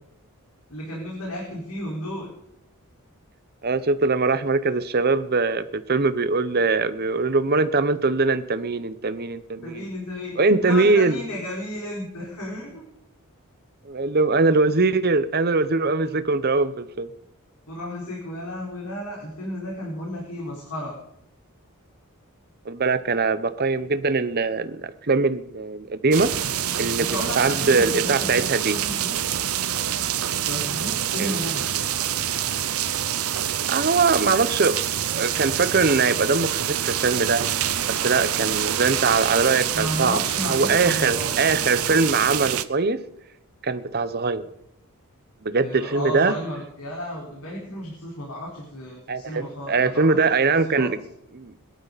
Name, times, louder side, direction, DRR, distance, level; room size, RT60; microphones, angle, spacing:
voice 1, 0.7-2.3 9.6-12.8 17.7-20.9 27.0-29.3 30.5-31.9 39.7-41.3 45.6-50.3 50.6-51.0, equal, 85° left, -3 dB, 4.6 m, -33 dB
voice 2, 3.6-9.9 10.4-11.2 13.9-17.1 22.7-26.4 26.8-28.8 31.2-31.4 33.7-34.8 35.1-37.4 37.8-40.2 40.5-43.0 43.6-44.4 45.4-46.3 49.1-51.0 51.3-51.5, right 3 dB, 45° right, 13 dB, 0.9 m, -22 dB
sound 1, 26.1-42.6, right 10 dB, 75° right, 0.8 m, -26 dB
22.0 x 12.5 x 4.1 m, 0.78 s
head